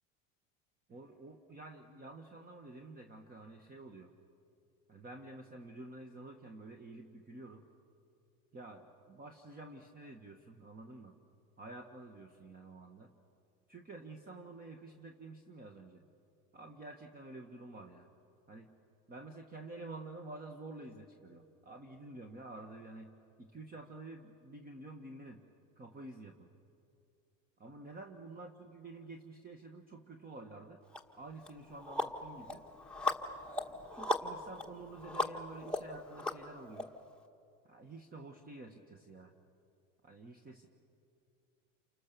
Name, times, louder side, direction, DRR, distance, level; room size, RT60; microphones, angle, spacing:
voice 1, 0.9-4.1 4.9-7.6 8.5-11.1 11.6-13.1 13.7-16.0 16.5-18.1 18.5-18.7 19.1-23.1 23.4-25.4 25.8-26.5 27.6-30.8 31.1-32.6 33.4-36.9 37.6-39.3 40.0-40.7, right 2 dB, 25° right, 4 dB, 1.6 m, -50 dB
sound 1, 30.9-31.0 31.5-36.8, left 2 dB, 5° left, 1.6 m, -38 dB
29.0 x 25.0 x 7.0 m, 2.6 s
supercardioid pair, 110°, 38 cm